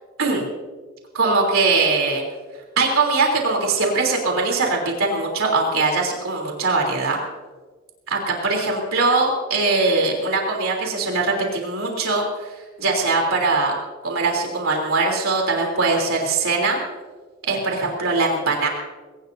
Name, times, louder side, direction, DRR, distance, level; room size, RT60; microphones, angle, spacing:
voice 1, 1.1-2.2 2.8-7.2 8.1-13.7 14.0-16.8 17.5-18.7, right 3 dB, 65° right, 0 dB, 3.4 m, -21 dB
22.0 x 18.5 x 2.7 m, 1.4 s
head